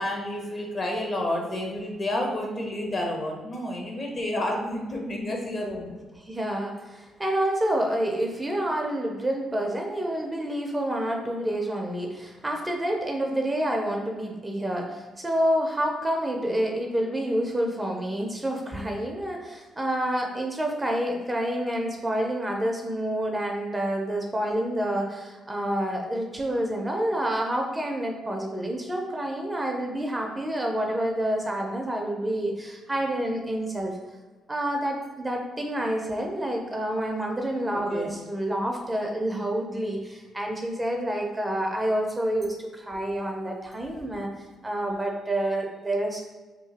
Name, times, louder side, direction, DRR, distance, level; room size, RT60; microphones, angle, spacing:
voice 1, 0.0-6.0 37.7-38.2, left 1 dB, 40° left, 1 dB, 0.8 m, -30 dB
voice 2, 6.2-33.9 34.5-44.3 44.6-46.2, right 1 dB, 15° right, 1 dB, 0.5 m, -28 dB
2.8 x 2.3 x 4.0 m, 1.2 s
cardioid pair, 90°, 0 cm